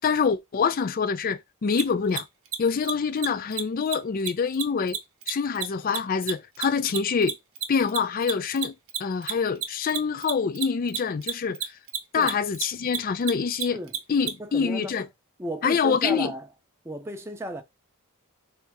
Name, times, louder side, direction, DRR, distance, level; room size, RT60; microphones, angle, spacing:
voice 1, 0.0-2.3 2.6-5.0 5.3-7.4 7.7-8.7 9.0-11.6 12.1-13.8 14.1-15.1 15.6-16.3, left 5 dB, 40° left, 0.3 m, -25 dB
Mechanisms, 1.7-1.8 2.1-2.2 2.5-2.6 2.8-2.9 3.2-3.3 3.5-3.6 3.9-4.0 4.3-7.0 7.2-14.3, right 10 dB, 65° right, 0.8 m, -29 dB
voice 2, 14.4-14.9 15.4-16.5 16.8-17.6, right 1 dB, 10° right, 0.6 m, -34 dB
3.5 x 2.7 x 4.5 m
head